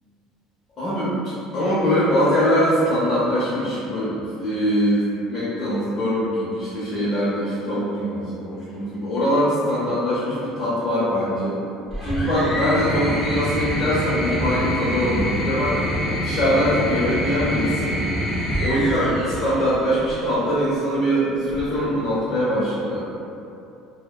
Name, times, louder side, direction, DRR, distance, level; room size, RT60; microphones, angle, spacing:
voice 1, 0.8-11.6 12.0-15.8 16.2-18.0 18.6-23.1, equal, 30° left, -11 dB, 0.7 m, -22 dB
sound 1, 11.9-20.3 21.5-22.1, equal, ahead, 0.8 m, -26 dB
3.1 x 2.1 x 2.3 m, 2.6 s
cardioid pair, 130°, 0 cm